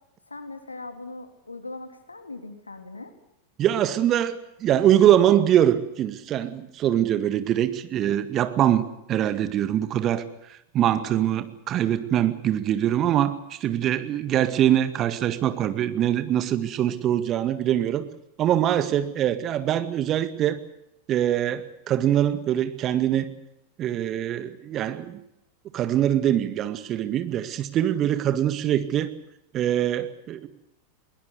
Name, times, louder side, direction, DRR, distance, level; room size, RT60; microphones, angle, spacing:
voice 1, 0.3-3.1, left 2 dB, 80° left, 8 dB, 3.3 m, -39 dB
voice 2, 3.6-10.2 10.5-18.1 18.4-20.6 21.1-23.3 23.8-25.2 25.7-29.1 29.5-30.5, right 11 dB, 30° right, 12 dB, 1.9 m, -23 dB
21.5 x 20.5 x 8.2 m, 0.85 s
figure-of-eight pair, 90°, 0 cm